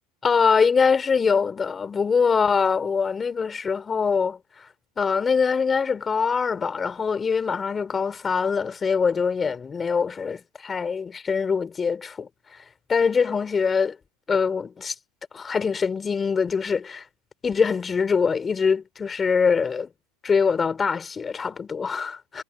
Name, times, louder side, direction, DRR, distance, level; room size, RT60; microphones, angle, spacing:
voice 1, 0.2-4.4 5.0-12.3 12.9-14.0 14.3-14.9 15.3-17.0 17.4-19.9 20.2-22.4, left 5 dB, 25° left, 4.7 m, -23 dB
supercardioid pair, 105°, 0 cm